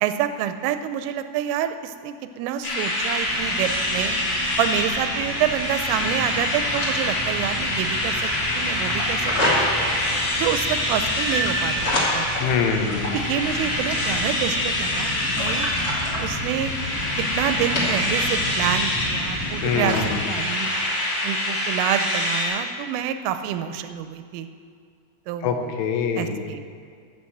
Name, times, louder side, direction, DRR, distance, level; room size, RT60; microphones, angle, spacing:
voice 1, 0.0-4.2 4.6-9.7 10.4-12.3 13.1-15.7 16.2-16.7 17.2-20.7 21.2-24.5 25.3-25.8 26.2-26.7, right 10 dB, 90° right, 10 dB, 3.2 m, -27 dB
sound 1, 2.6-22.5, left 1 dB, 65° left, 5.6 m, -26 dB
sound 2, 3.2-20.2, left 1 dB, 40° left, 1.2 m, -30 dB
voice 2, 12.4-13.2 19.6-20.5 25.4-26.5, left 6 dB, 80° left, 4 dB, 3.3 m, -25 dB
13.5 x 5.9 x 7.8 m, 2.3 s
omnidirectional pair, 5.6 m